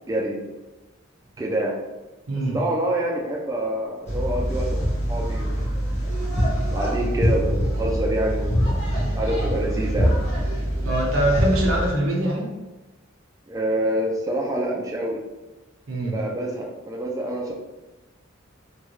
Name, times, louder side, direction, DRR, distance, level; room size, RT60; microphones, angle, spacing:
voice 1, 0.1-0.5 1.4-1.7 2.5-5.7 6.7-8.8 9.1-10.1 13.5-15.2 16.1-17.5, right 1 dB, 15° right, -2 dB, 0.3 m, -27 dB
sound 1, 4.1-11.9, equal, 35° left, 1.1 m, -24 dB
voice 2, 10.8-12.5 15.9-16.1, right 1 dB, 85° right, -2 dB, 0.8 m, -23 dB
3.1 x 2.2 x 3.0 m, 1.1 s
head